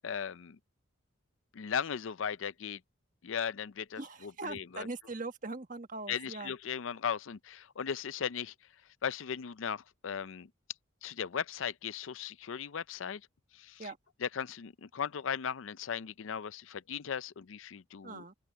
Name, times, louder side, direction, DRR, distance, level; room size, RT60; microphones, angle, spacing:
voice 1, 0.0-0.6 1.5-2.8 3.2-4.9 6.1-8.5 9.0-10.5 11.0-13.2 13.5-13.9 14.2-18.2, left 7 dB, 75° left, 0.5 m, -37 dB
voice 2, 4.0-6.5 13.8-14.0 18.0-18.3, right 3 dB, 40° right, 1.5 m, -41 dB
open air
head